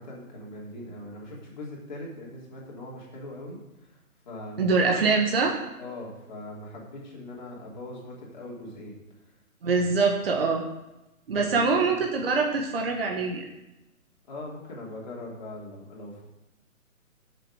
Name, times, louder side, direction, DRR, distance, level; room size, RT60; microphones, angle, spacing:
voice 1, 0.0-4.0 4.2-4.6 4.9-5.0 5.8-9.0 9.7-9.8 11.3-11.6 14.3-16.2, left 1 dB, 30° left, -3 dB, 3.1 m, -41 dB
voice 2, 4.6-5.5 9.6-10.6 11.3-13.5, right 4 dB, 40° right, 1 dB, 1.4 m, -24 dB
13.5 x 6.8 x 4.9 m, 0.95 s
hypercardioid pair, 170°, 43 cm